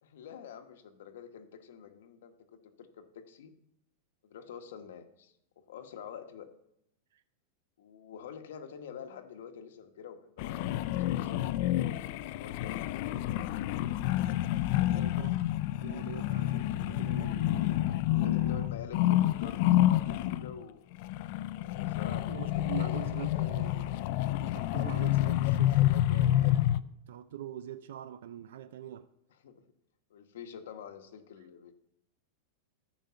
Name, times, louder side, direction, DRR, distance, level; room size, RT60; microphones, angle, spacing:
voice 1, 0.0-3.5 4.2-6.5 7.8-12.0 12.4-13.1 14.7-15.2 18.1-20.9 21.6-23.7 29.3-29.7 30.1-31.7, left 8 dB, 70° left, 1.1 m, -47 dB
sound 1, 10.4-20.6 20.9-26.8, left 14 dB, 40° left, 0.3 m, -29 dB
voice 2, 14.9-15.3 15.8-18.7 22.1-24.0 24.4-26.7 27.1-29.1, right 10 dB, 75° right, 0.5 m, -44 dB
13.5 x 5.2 x 5.7 m
supercardioid pair, 180°, 0 cm